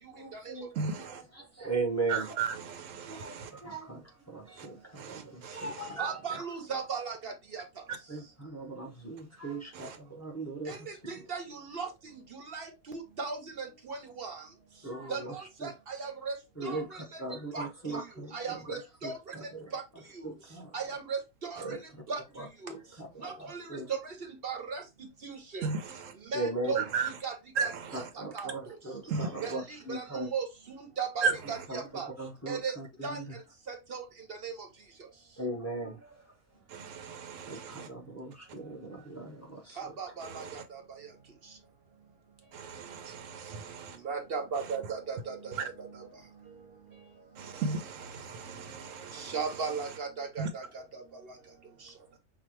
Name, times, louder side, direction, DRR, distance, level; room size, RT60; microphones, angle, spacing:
voice 1, 0.1-2.4 3.0-6.4 8.1-11.1 14.8-15.3 15.6-15.7 16.6-20.7 21.6-21.8 22.3-23.9 26.3-26.9 27.9-30.3 31.7-33.4 35.4-36.3 36.8-36.9 37.4-40.1, right 2 dB, 15° left, 1.0 m, -39 dB
voice 2, 0.8-1.2 2.1-3.5 5.0-5.6 25.6-25.8 26.9-27.1 27.6-27.7 29.1-29.3 31.2-31.3 36.7-37.9 40.4-40.5 42.5-44.0 47.4-49.3 50.4-50.5, right 5 dB, 80° right, 1.0 m, -34 dB
voice 3, 6.0-7.6 10.7-11.9 12.3-12.7 13.2-14.4 15.1-16.3 16.6-17.0 17.5-17.7 17.9-18.0 18.3-19.2 19.7-19.8 20.7-21.7 22.1-22.2 22.6-22.7 23.2-24.0 24.4-24.8 25.2-25.7 26.3-28.0 28.3-28.5 29.4-29.6 29.9-32.1 32.5-32.7 33.0-33.2 33.7-34.5 39.8-40.6 44.0-45.9 49.1-50.6, right 5 dB, 50° right, 1.0 m, -37 dB
5.8 x 2.4 x 3.1 m
omnidirectional pair, 1.3 m